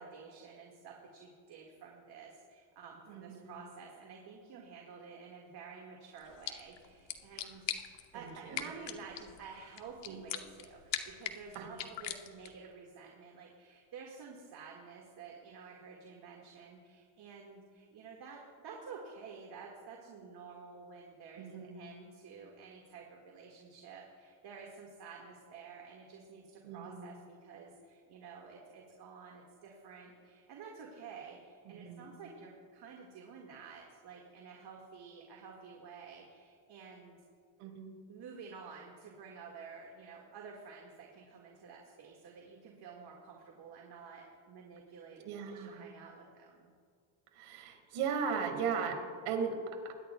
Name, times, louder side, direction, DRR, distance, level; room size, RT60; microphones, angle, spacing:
voice 1, 0.0-7.9 8.1-37.2 38.1-46.7, right 5 dB, 50° right, -1 dB, 1.8 m, -51 dB
voice 2, 3.1-3.6 8.1-8.7 10.1-10.3 11.5-11.8 21.4-21.8 26.6-27.1 31.7-32.1 37.6-38.0 45.2-45.9 47.3-49.9, right 6 dB, 80° right, 3 dB, 2.0 m, -38 dB
sound 1, 6.2-12.7, left 10 dB, 60° left, 1.0 m, -43 dB
21.5 x 10.5 x 2.3 m, 2.1 s
cardioid pair, 115°, 49 cm